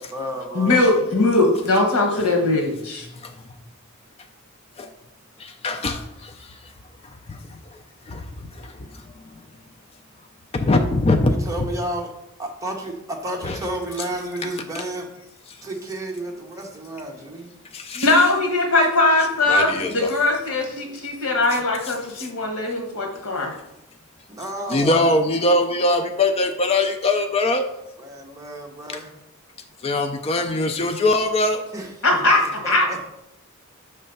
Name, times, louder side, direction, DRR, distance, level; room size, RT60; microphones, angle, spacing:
voice 1, 0.0-0.9 11.3-12.1 12.4-15.1 15.6-17.5 24.3-25.1 28.0-29.1 31.7-32.2 32.6-33.1, right 1 dB, 15° right, 0 dB, 0.9 m, -31 dB
voice 2, 0.5-3.1 17.9-23.6 32.0-32.9, left 2 dB, 90° left, 2 dB, 1.4 m, -20 dB
voice 3, 5.4-6.7 7.3-7.6 8.1-9.0 9.3-9.4 10.5-11.3 11.6-11.7 13.4-13.6 17.7-18.1 19.5-20.1 21.8-21.9 22.2-22.3 24.7-27.7 28.9-29.0 29.8-31.7, left 2 dB, 25° left, 5 dB, 0.4 m, -22 dB
5.5 x 3.3 x 5.3 m, 0.85 s
head